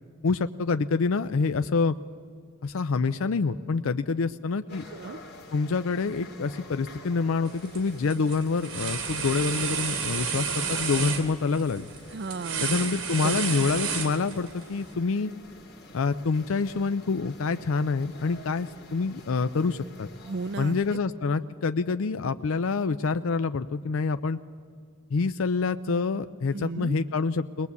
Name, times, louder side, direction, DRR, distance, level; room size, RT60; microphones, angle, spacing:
voice 1, 0.2-1.9 2.6-4.8 5.5-11.9 12.6-15.3 15.9-20.1 20.6-24.4 25.1-27.7, left 4 dB, 65° left, 11 dB, 0.5 m, -27 dB
sound 1, 4.7-21.0, left 2 dB, 50° left, 2.6 m, -48 dB
voice 2, 4.9-5.2 12.1-12.8 13.2-13.4 20.3-20.8 26.5-27.0, right 4 dB, 50° right, 16 dB, 0.5 m, -34 dB
sound 2, 7.5-7.8 8.1-14.6, right 6 dB, 85° right, 2.8 m, -31 dB
21.5 x 19.0 x 8.3 m, 2.2 s
head